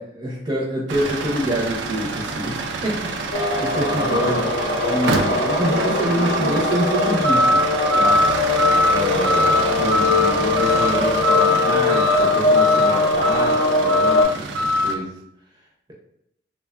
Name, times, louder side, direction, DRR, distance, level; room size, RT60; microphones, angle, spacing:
voice 1, 0.0-4.5 4.8-7.6 8.0-8.2 8.9-14.5 14.8-15.1, right 1 dB, 20° right, -4 dB, 0.5 m, -26 dB
sound 1, 0.9-14.9, equal, 80° right, 0.3 m, -23 dB
sound 2, 3.3-14.2, left 3 dB, 60° left, 0.4 m, -21 dB
3.2 x 2.1 x 2.3 m, 0.77 s
head